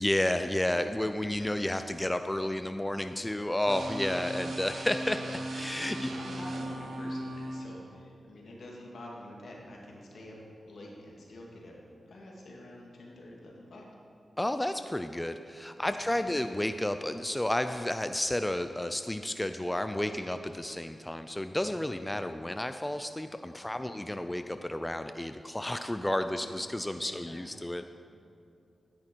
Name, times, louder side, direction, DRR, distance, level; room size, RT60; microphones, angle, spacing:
voice 1, 0.0-6.1 14.4-27.9, left 1 dB, 15° left, 9 dB, 0.4 m, -31 dB
sound 1, 3.7-7.6, right 1 dB, 75° right, 1.1 m, -37 dB
voice 2, 5.7-10.4 10.6-11.7 12.0-13.9 15.8-16.6 20.1-20.3 21.7-22.0 23.8-24.1 26.4-27.5, left 1 dB, 75° left, -2 dB, 2.2 m, -48 dB
11.0 x 10.5 x 4.6 m, 2.5 s
cardioid pair, 55°, 0 cm